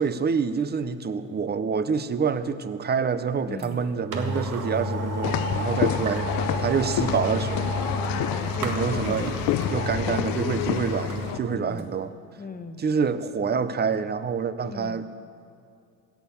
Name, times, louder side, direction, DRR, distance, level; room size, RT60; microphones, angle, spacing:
voice 1, 0.0-6.3 6.6-7.9 8.6-9.4 9.7-12.1 12.8-15.1, right 6 dB, 25° right, 13 dB, 0.7 m, -27 dB
voice 2, 3.5-3.8 5.9-6.8 8.2-9.7 11.5-11.9 12.4-12.8 14.7-15.0, left 4 dB, 20° left, 8 dB, 1.0 m, -39 dB
sound 1, 3.6-3.7 4.1-11.4 11.8-11.9, equal, 50° right, 1.9 m, -30 dB
sound 2, 5.2-11.4, left 15 dB, 60° left, 0.5 m, -29 dB
16.0 x 7.2 x 7.1 m, 2.3 s
supercardioid pair, 90°, 39 cm